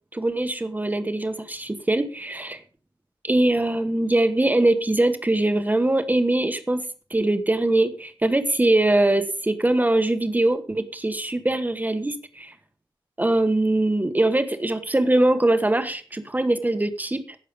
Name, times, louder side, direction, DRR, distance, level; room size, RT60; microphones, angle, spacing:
voice 1, 0.1-2.6 3.2-12.5 13.2-17.4, right 2 dB, 20° right, 9 dB, 1.2 m, -22 dB
15.5 x 6.7 x 5.2 m, 0.39 s
wide cardioid pair, 100°, 9 cm